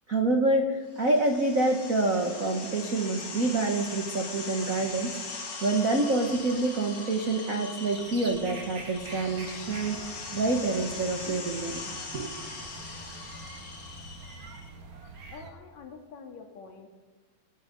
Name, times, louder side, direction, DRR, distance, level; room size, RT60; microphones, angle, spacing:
voice 1, 0.1-5.1 5.6-10.0 10.3-12.3, right 2 dB, 85° right, 3 dB, 0.7 m, -27 dB
sound 1, 0.9-14.7, left 3 dB, 40° left, 2.2 m, -40 dB
sound 2, 7.8-15.5, right 2 dB, 40° right, 2.3 m, -45 dB
voice 2, 15.3-16.9, left 5 dB, 60° left, 2 dB, 3.1 m, -46 dB
27.0 x 9.8 x 5.4 m, 1.3 s
omnidirectional pair, 3.8 m